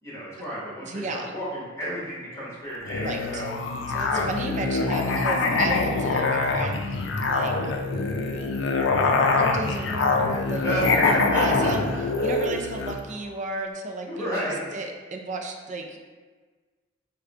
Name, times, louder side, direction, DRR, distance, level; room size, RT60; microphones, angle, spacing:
voice 1, 0.0-3.5 4.1-4.2 10.6-11.7 14.1-14.6, equal, 20° left, -8 dB, 1.4 m, -31 dB
voice 2, 0.8-1.3 3.0-3.4 3.9-7.5 9.3-11.9 12.2-14.4 14.7-16.0, right 2 dB, 40° right, 2 dB, 0.5 m, -34 dB
Musical instrument, 2.9-13.0, left 3 dB, 90° left, 0.4 m, -24 dB
4.9 x 2.3 x 3.6 m, 1.4 s
head